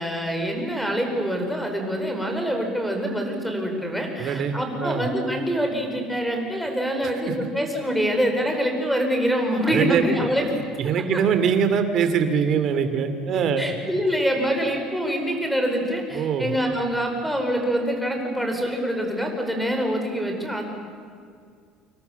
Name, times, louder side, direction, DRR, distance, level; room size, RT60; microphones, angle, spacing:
voice 1, 0.0-10.5 11.1-11.2 13.3-20.6, equal, ahead, 3 dB, 4.9 m, -25 dB
voice 2, 4.2-5.1 7.3-7.4 9.7-10.0 10.5-13.6 16.1-16.5, right 7 dB, 45° right, 9 dB, 3.0 m, -23 dB
29.0 x 26.5 x 7.3 m, 2.2 s
cardioid pair, 150°, 0 cm